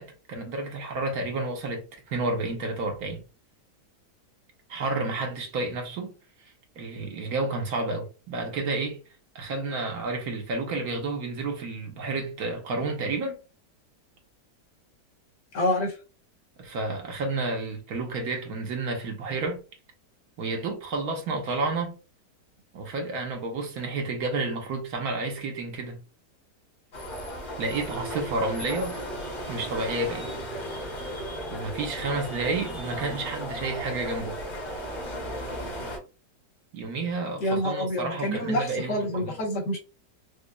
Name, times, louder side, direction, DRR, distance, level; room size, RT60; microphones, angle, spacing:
voice 1, 0.0-3.2 4.7-6.1 6.8-9.0 9.3-13.4 16.6-19.6 20.4-22.0 22.7-26.0 27.6-29.0 29.4-30.3 31.5-34.4 36.7-39.4, right 3 dB, 65° right, 1.3 m, -30 dB
voice 2, 15.5-15.9 37.4-39.8, left 1 dB, 80° left, 1.7 m, -27 dB
sound 1, 26.9-36.0, equal, 60° left, 1.7 m, -35 dB
5.0 x 2.2 x 2.2 m
omnidirectional pair, 1.8 m